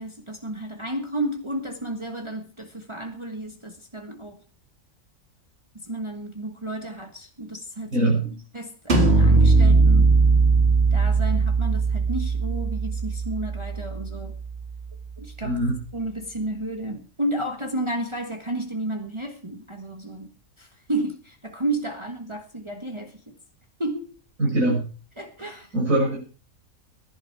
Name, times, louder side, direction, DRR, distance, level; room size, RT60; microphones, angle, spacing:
voice 1, 0.0-4.4 5.7-8.1 8.5-10.2 10.9-14.4 15.2-15.6 15.9-23.3 23.8-24.2 25.2-25.7, right 1 dB, 20° right, 1.5 m, -32 dB
voice 2, 7.9-8.4 15.4-15.8 24.4-24.9 25.7-26.2, right 1 dB, 90° right, 6.8 m, -22 dB
sound 1, 8.9-14.5, right 3 dB, 50° right, 2.5 m, -19 dB
16.0 x 11.0 x 4.7 m
omnidirectional pair, 1.4 m